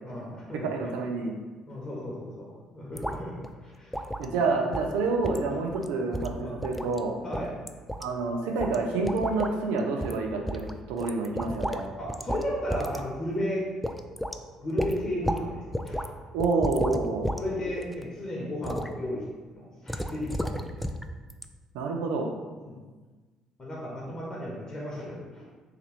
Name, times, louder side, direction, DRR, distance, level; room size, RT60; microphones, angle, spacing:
voice 1, 0.0-0.9 1.7-2.4 2.7-4.5 6.4-6.5 7.2-7.5 12.0-13.6 14.6-16.0 17.3-19.2 19.5-20.8 22.6-22.8 23.6-25.5, left 1 dB, 30° left, -4 dB, 1.0 m, -34 dB
voice 2, 0.7-1.4 4.2-7.2 8.0-11.9 16.3-17.3 21.7-22.3, right 3 dB, 75° right, 2 dB, 0.5 m, -28 dB
sound 1, 2.9-3.2 3.4-3.5 3.9-4.3 4.7-4.9 5.2-5.4 5.7-5.9 6.1-7.0 7.3-8.0 8.6-8.8 9.0-9.5 10.0-10.2 10.5-11.8 12.1-12.4 12.7-13.0 13.3-13.4 13.8-14.4 14.8-15.4 15.7-16.1 16.4-17.4 17.7-18.0 18.6-18.9 19.9-21.0 21.3-21.4, equal, ahead, 0.3 m, -32 dB
3.4 x 3.2 x 3.3 m, 1.3 s
hypercardioid pair, 50°, 2 cm